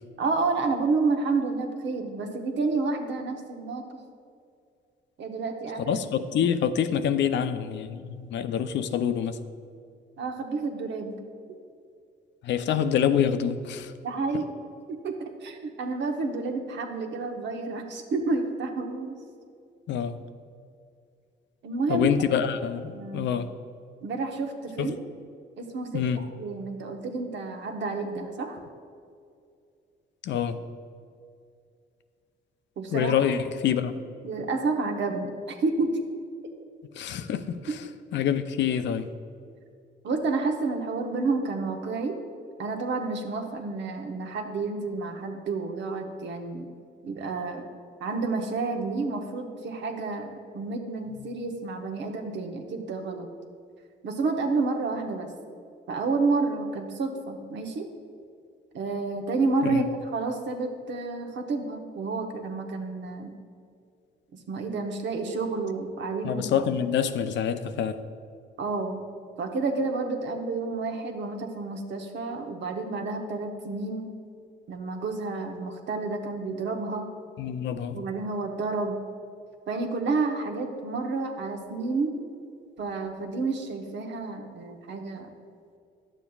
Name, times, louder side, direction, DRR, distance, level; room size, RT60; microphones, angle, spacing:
voice 1, 0.2-4.0 5.2-5.9 10.2-11.2 14.0-14.5 14.9-19.2 21.6-22.1 22.9-23.3 24.0-25.0 25.6-28.6 32.8-33.2 34.2-36.0 37.7-37.8 40.0-42.2 42.6-46.7 47.0-47.6 48.0-53.3 54.0-55.3 55.9-57.9 58.7-63.3 64.5-66.4 68.6-69.0 69.4-74.1 74.7-77.1 77.9-79.0 79.7-82.2 82.8-85.3, right 3 dB, 65° right, 4 dB, 0.9 m, -30 dB
voice 2, 5.8-9.4 12.4-13.9 19.9-20.2 21.9-23.5 24.8-25.0 25.9-26.2 30.2-30.6 32.9-33.9 37.0-37.8 38.1-39.1 59.6-59.9 66.2-68.0 77.4-78.0, left 8 dB, 65° left, 11 dB, 0.4 m, -26 dB
10.5 x 7.1 x 2.3 m, 2.3 s
cardioid pair, 90°, 20 cm